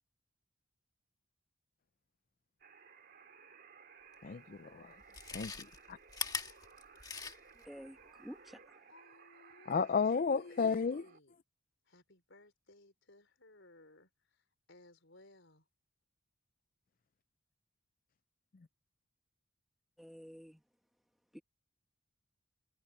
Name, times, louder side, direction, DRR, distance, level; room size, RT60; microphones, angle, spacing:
sound 1, 2.6-11.2, right 5 dB, 50° right, 2.2 m, -59 dB
voice 1, 4.2-5.0 5.3-6.0 9.7-11.0, left 5 dB, 40° left, 0.4 m, -33 dB
Chewing mastication, 4.2-4.3 5.0-7.7 8.0-8.1, left 5 dB, 20° left, 1.7 m, -42 dB
voice 2, 7.6-8.9 20.0-20.6 21.3-21.4, equal, ahead, 1.7 m, -51 dB
voice 3, 8.9-11.4 11.9-14.4 14.7-15.7, left 2 dB, 60° left, 5.2 m, -60 dB
head